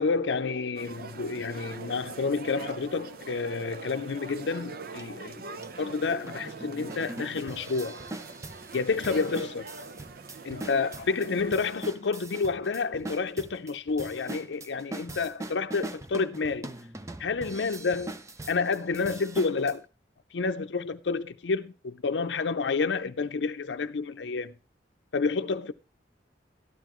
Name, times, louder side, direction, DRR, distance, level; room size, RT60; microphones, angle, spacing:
voice 1, 0.0-8.0 8.7-9.7 10.4-16.7 17.2-18.1 18.5-19.8 20.3-24.5 25.1-25.7, left 4 dB, 90° left, 0.5 m, -29 dB
sound 1, 0.8-11.5, right 3 dB, 55° right, 0.7 m, -43 dB
sound 2, 5.0-5.1 5.6-5.7 6.3-19.7, right 2 dB, 20° right, 0.5 m, -42 dB
12.5 x 11.5 x 3.0 m
head